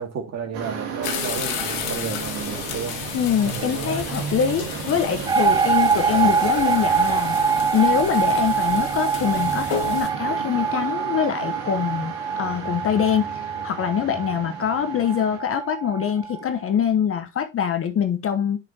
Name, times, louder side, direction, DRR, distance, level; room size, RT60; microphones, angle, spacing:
voice 1, 0.0-3.2 3.4-4.0, right 6 dB, 40° right, 2.4 m, -32 dB
sound 1, 0.5-15.4, right 6 dB, 60° right, 2.4 m, -34 dB
sound 2, 1.0-10.1, left 7 dB, 55° left, 2.1 m, -33 dB
voice 2, 3.1-7.4 7.7-13.3 13.6-18.6, left 8 dB, 30° left, 1.0 m, -24 dB
sound 3, 5.3-16.4, right 6 dB, 10° right, 0.4 m, -24 dB
10.5 x 5.1 x 2.9 m
hypercardioid pair, 70°, 41 cm